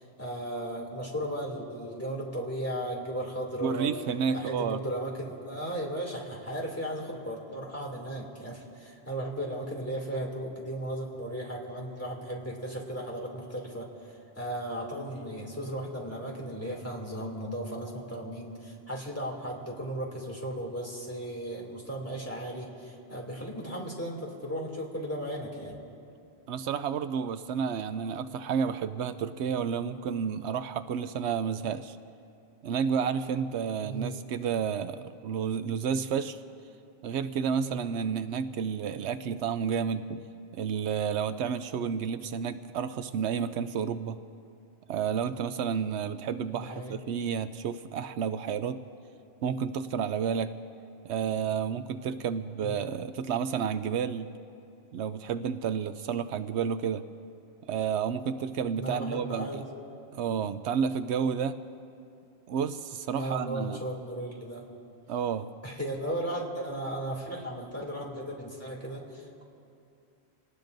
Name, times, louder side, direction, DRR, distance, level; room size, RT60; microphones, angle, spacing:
voice 1, 0.0-3.9 4.3-25.8 33.8-34.1 37.5-37.8 46.5-46.9 52.6-52.8 58.8-59.7 63.1-64.6 65.6-69.4, right 1 dB, 15° left, -3 dB, 2.6 m, -36 dB
voice 2, 3.6-4.8 26.5-32.0 32.6-36.4 37.0-40.3 40.5-44.2 44.9-48.8 49.4-50.5 51.0-54.3 54.9-57.0 57.7-59.6 60.1-61.6 62.5-63.8 65.1-65.5, right 7 dB, 80° right, 11 dB, 0.8 m, -31 dB
28.0 x 19.0 x 2.6 m, 2.6 s
omnidirectional pair, 1.1 m